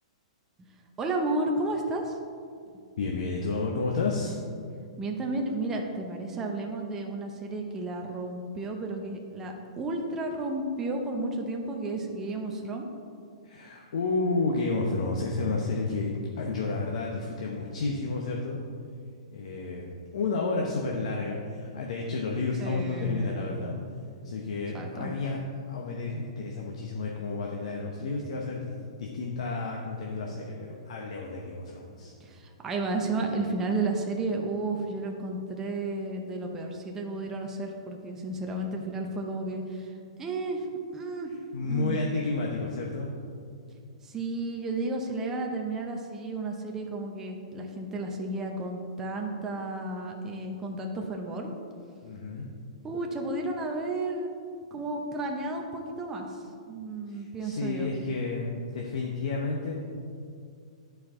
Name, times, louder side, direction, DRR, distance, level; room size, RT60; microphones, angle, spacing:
voice 1, 1.0-2.2 5.0-12.9 22.6-23.7 24.7-25.1 32.2-39.9 40.2-41.3 41.7-42.0 44.0-51.5 52.8-54.3 54.7-57.9, right 2 dB, 15° right, 1 dB, 0.6 m, -32 dB
voice 2, 3.0-4.4 13.4-18.6 19.3-23.8 24.2-25.4 25.7-32.1 41.5-43.1 52.0-52.5 57.1-59.7, left 3 dB, 70° left, -1 dB, 0.8 m, -31 dB
10.5 x 4.6 x 3.7 m, 2.3 s
hypercardioid pair, 160°, 4 cm